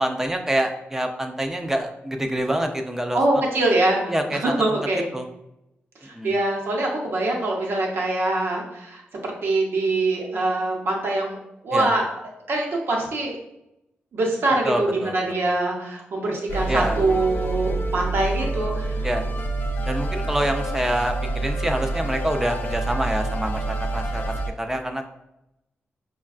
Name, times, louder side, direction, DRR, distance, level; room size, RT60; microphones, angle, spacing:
voice 1, 0.0-3.4 4.1-4.4 4.7-4.8 5.1-5.3 6.1-6.3 11.7-11.9 14.6-15.4 16.7-17.0 19.0-19.2 19.9-25.1, right 1 dB, 10° right, 5 dB, 0.4 m, -26 dB
voice 2, 3.1-4.0 4.3-5.1 6.0-11.4 11.6-12.1 12.5-13.4 14.1-19.0, right 2 dB, 70° right, -1 dB, 0.8 m, -24 dB
sound 1, 16.5-24.5, right 2 dB, 55° left, 0.4 m, -27 dB
5.0 x 2.2 x 2.4 m, 0.87 s
cardioid pair, 100°, 4 cm